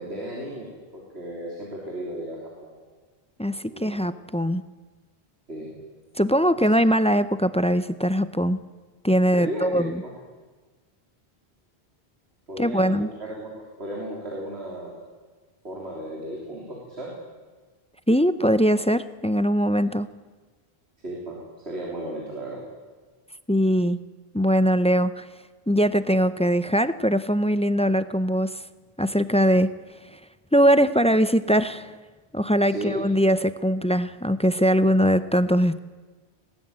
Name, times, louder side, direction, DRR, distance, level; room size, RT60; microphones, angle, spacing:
voice 1, 0.0-2.7 3.7-4.0 5.5-5.7 9.3-10.1 12.5-13.5 13.8-15.0 15.6-17.1 19.8-19.9 21.0-21.4 21.7-22.6 32.7-33.0, right 1 dB, 90° right, -3 dB, 3.8 m, -35 dB
voice 2, 3.4-4.6 6.2-8.6 9.0-10.0 12.6-13.1 18.1-20.1 23.5-24.0 24.3-25.3 25.7-28.6 29.0-29.7 30.1-30.2 30.5-31.9 32.3-35.8, equal, 10° left, 14 dB, 0.4 m, -21 dB
19.5 x 17.5 x 8.8 m, 1.3 s
omnidirectional pair, 1.0 m